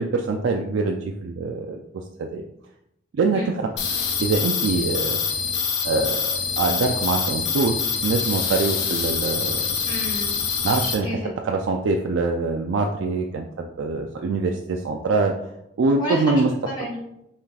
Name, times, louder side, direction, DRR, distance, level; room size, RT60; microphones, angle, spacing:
voice 1, 0.0-2.4 3.1-3.7 4.2-5.2 5.8-9.7 10.6-11.1 11.4-15.3 15.8-16.5, right 3 dB, 80° right, 3 dB, 0.3 m, -24 dB
sound 1, 3.8-10.9, left 6 dB, 60° left, 0.8 m, -25 dB
voice 2, 9.8-10.4 11.0-11.3 16.0-17.0, equal, 20° left, -7 dB, 1.2 m, -30 dB
5.6 x 2.4 x 3.3 m, 0.82 s
head